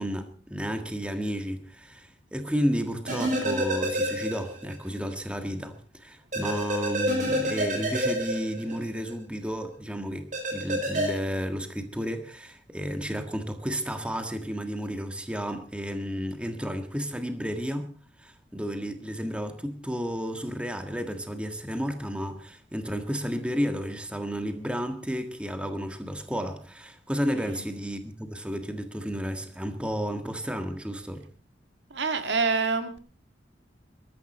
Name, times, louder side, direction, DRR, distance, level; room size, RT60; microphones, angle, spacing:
voice 1, 0.0-17.9 18.2-31.3, equal, 5° right, 1.6 m, -32 dB
sound 1, 3.1-4.8 5.1-5.2 6.3-9.1 10.3-11.1, right 1 dB, 45° right, 6.0 m, -28 dB
voice 2, 31.9-33.0, right 4 dB, 70° right, 1.9 m, -27 dB
21.0 x 14.0 x 4.3 m
head